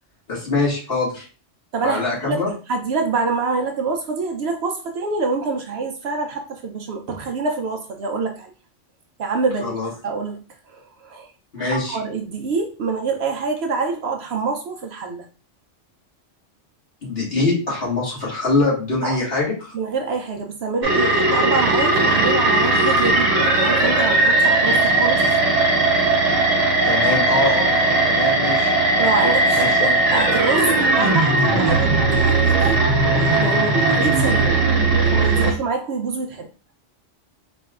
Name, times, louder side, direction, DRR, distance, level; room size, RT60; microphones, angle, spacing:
voice 1, 0.3-1.2 1.8-2.5 9.6-9.9 11.5-12.0 17.0-19.7 26.8-28.7 29.5-30.0, left 3 dB, 55° left, -5 dB, 1.8 m, -23 dB
voice 2, 1.7-2.4 2.7-8.5 9.2-9.7 10.0-10.4 10.7-11.3 11.6-15.3 19.0-19.2 19.7-25.2 29.0-29.6 30.1-32.8 33.1-34.6 35.1-36.5, right 4 dB, 65° right, 4 dB, 0.8 m, -26 dB
sound 1, 20.8-35.5, right 2 dB, 90° right, 1.2 m, -18 dB
4.3 x 2.9 x 2.3 m, 0.36 s
omnidirectional pair, 1.3 m